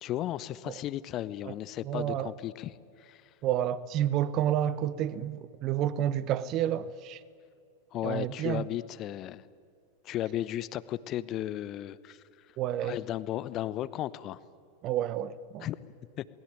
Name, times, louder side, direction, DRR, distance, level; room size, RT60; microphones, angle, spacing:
voice 1, 0.0-3.3 7.9-9.4 10.0-12.2 12.8-14.4 15.6-15.8 16.2-16.3, left 13 dB, 35° left, 0.9 m, -35 dB
voice 2, 1.8-2.3 3.4-7.2 8.0-8.7 12.6-13.0 14.8-15.7, right 11 dB, 35° right, 0.9 m, -30 dB
28.0 x 20.5 x 9.2 m
figure-of-eight pair, 90°, 0 cm